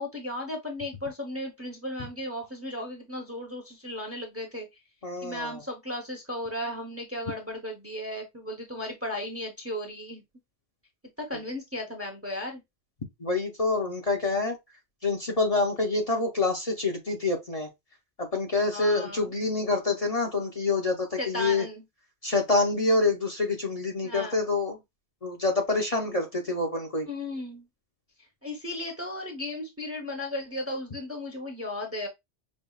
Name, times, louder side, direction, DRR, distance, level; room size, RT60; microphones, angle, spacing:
voice 1, 0.0-4.7 5.2-10.2 11.2-12.6 18.7-19.3 21.2-21.8 24.0-24.4 27.1-27.7 28.4-32.1, left 1 dB, 15° right, 0.8 m, -35 dB
voice 2, 5.0-5.6 13.2-14.6 15.0-17.7 18.2-21.7 22.2-24.8 25.2-27.1, left 3 dB, 40° left, 0.8 m, -27 dB
5.4 x 2.4 x 2.3 m
omnidirectional pair, 1.1 m